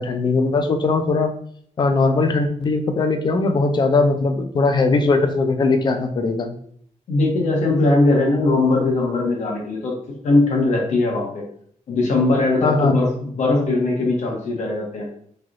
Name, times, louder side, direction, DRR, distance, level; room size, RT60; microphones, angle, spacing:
voice 1, 0.0-1.3 1.8-6.5 12.6-13.0, left 3 dB, 35° left, 7 dB, 0.4 m, -19 dB
voice 2, 7.1-10.0 10.2-11.4 11.9-15.1, left 2 dB, 70° left, 0 dB, 0.9 m, -20 dB
3.2 x 2.9 x 2.5 m, 0.62 s
wide cardioid pair, 175°, 13 cm